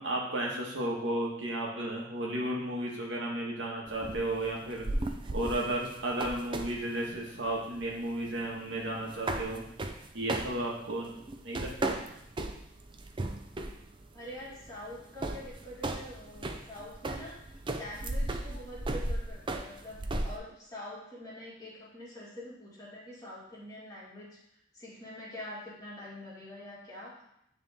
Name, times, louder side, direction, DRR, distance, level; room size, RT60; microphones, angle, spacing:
voice 1, 0.0-4.9 5.3-9.6 10.1-11.1 11.4-12.2, right 1 dB, 70° right, -2 dB, 1.4 m, -33 dB
sound 1, 3.9-20.4, right 2 dB, 25° right, 0.4 m, -36 dB
voice 2, 14.1-24.4 24.7-27.2, left 1 dB, 20° left, -7 dB, 2.0 m, -45 dB
9.5 x 3.4 x 3.5 m, 0.77 s
head